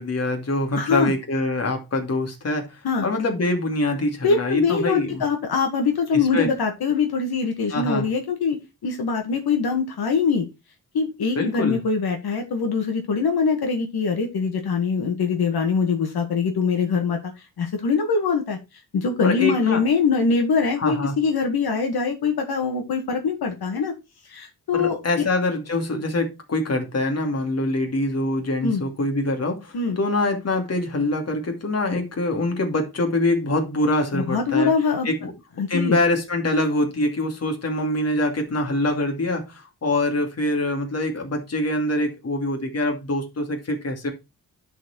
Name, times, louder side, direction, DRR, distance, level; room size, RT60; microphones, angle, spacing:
voice 1, 0.0-5.2 6.3-6.5 7.7-8.1 11.3-11.8 19.2-19.8 20.8-21.2 24.7-34.7 35.0-35.2 35.7-44.1, left 2 dB, 40° left, 2.6 m, -24 dB
voice 2, 0.8-1.1 2.8-3.1 4.2-10.5 10.9-17.2 17.6-18.6 18.9-23.9 24.3-25.2 28.6-28.8 29.7-30.0 34.1-35.1 35.6-36.0, left 5 dB, 80° left, 1.9 m, -23 dB
10.5 x 4.7 x 4.4 m
cardioid pair, 105°, 37 cm